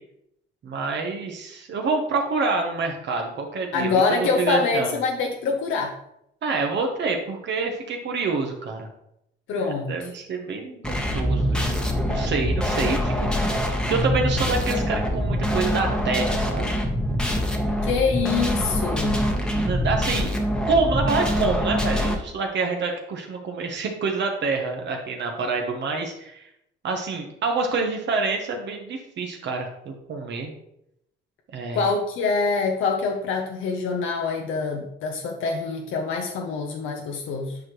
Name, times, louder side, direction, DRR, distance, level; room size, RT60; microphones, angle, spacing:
voice 1, 0.6-5.0 6.4-8.9 9.6-11.7 12.0-16.8 19.5-20.3 20.7-26.5 26.8-30.5 31.5-31.9, right 4 dB, 65° right, 2 dB, 1.1 m, -27 dB
voice 2, 3.7-5.9 9.5-10.1 17.8-19.2 31.7-37.6, left 4 dB, 85° left, 1 dB, 0.8 m, -25 dB
sound 1, 10.8-22.2, equal, 5° left, 1.1 m, -24 dB
8.5 x 4.8 x 3.1 m, 0.78 s
cardioid pair, 90°, 20 cm